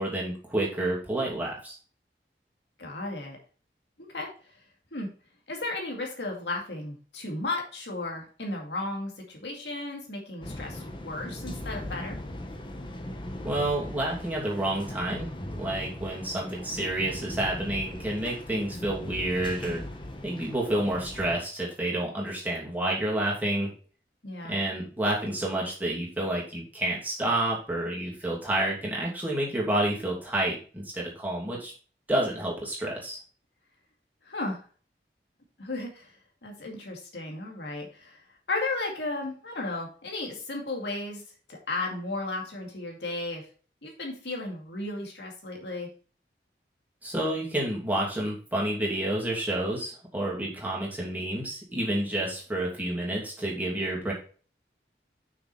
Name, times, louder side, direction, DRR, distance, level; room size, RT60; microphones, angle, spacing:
voice 1, 0.0-1.8 13.4-15.3 15.6-19.8 20.2-23.7 24.5-31.7 32.1-33.2 47.0-54.1, right 1 dB, 10° right, -4 dB, 2.7 m, -29 dB
voice 2, 2.8-3.4 4.0-4.3 4.9-5.1 5.5-12.2 24.2-24.5 34.2-34.6 35.6-36.1 36.4-38.2 38.5-41.2 41.5-43.4 43.8-45.9, left 2 dB, 80° left, 0 dB, 2.2 m, -34 dB
sound 1, 10.4-21.4, left 1 dB, 30° left, 1.0 m, -39 dB
6.6 x 6.4 x 4.2 m, 0.39 s
head